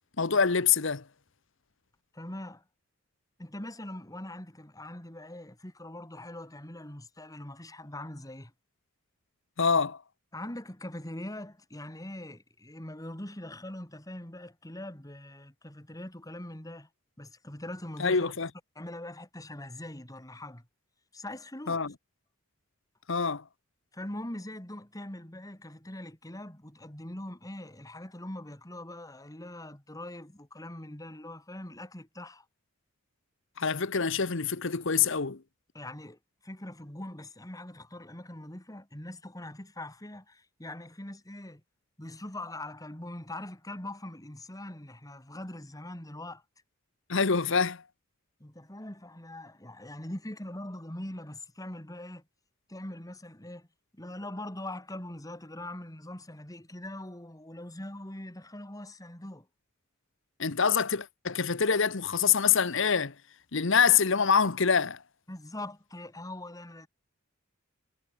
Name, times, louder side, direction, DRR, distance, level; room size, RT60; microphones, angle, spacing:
voice 1, 0.2-1.0 9.6-10.0 18.0-18.5 21.7-21.9 23.1-23.4 33.6-35.4 47.1-47.8 60.4-63.1 63.5-65.0, left 6 dB, 65° left, 1.1 m, -25 dB
voice 2, 2.1-2.6 3.4-8.5 10.3-16.9 17.2-18.3 18.8-20.6 21.1-21.8 23.9-32.4 35.7-41.6 42.0-46.4 48.4-52.2 52.7-53.7 53.9-59.5 65.3-66.9, left 1 dB, 15° left, 2.7 m, -42 dB
head